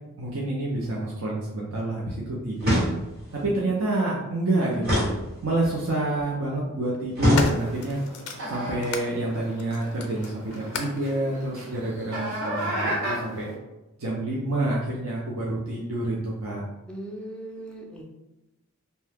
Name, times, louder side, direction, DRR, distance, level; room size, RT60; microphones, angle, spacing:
voice 1, 0.2-2.9 3.3-5.1 5.4-8.0 8.5-13.5 14.0-16.7, right 2 dB, 70° right, -4 dB, 0.6 m, -28 dB
sound 1, 2.6-3.3 4.8-5.8 7.2-8.0, equal, 45° right, 1.1 m, -25 dB
sound 2, 4.7-4.8 5.9-6.3 6.8-9.1 9.6-11.1 11.9-12.0, left 4 dB, 85° left, 0.4 m, -34 dB
sound 3, 7.4-13.5, right 1 dB, 85° right, 1.3 m, -34 dB
voice 2, 16.9-18.0, right 1 dB, 5° left, -1 dB, 0.3 m, -38 dB
2.7 x 2.2 x 3.4 m, 0.99 s
head